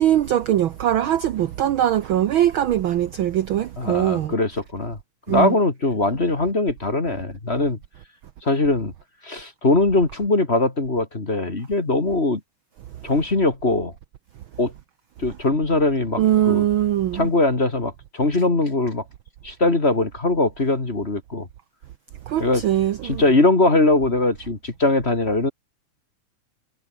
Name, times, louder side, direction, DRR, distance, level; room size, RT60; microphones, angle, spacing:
voice 1, 0.0-4.3 5.3-5.6 16.2-17.3 22.3-23.2, right 11 dB, 70° right, 1.2 m, -21 dB
voice 2, 3.8-5.0 5.3-7.8 8.4-8.9 9.2-12.4 13.0-13.9 14.6-14.7 15.2-16.2 16.5-16.7 17.1-19.0 19.4-21.5 22.4-22.6 23.0-25.5, left 2 dB, 25° left, 2.3 m, -21 dB
omnidirectional pair, 3.3 m